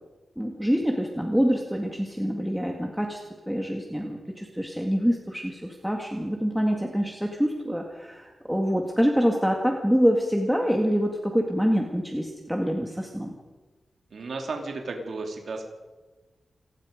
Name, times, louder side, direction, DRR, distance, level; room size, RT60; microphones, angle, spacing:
voice 1, 0.4-3.2 3.5-13.3, equal, ahead, 1 dB, 2.1 m, -25 dB
voice 2, 14.1-15.6, right 3 dB, 65° right, 2 dB, 2.7 m, -33 dB
28.5 x 19.0 x 5.2 m, 1.3 s
wide cardioid pair, 135°, 0 cm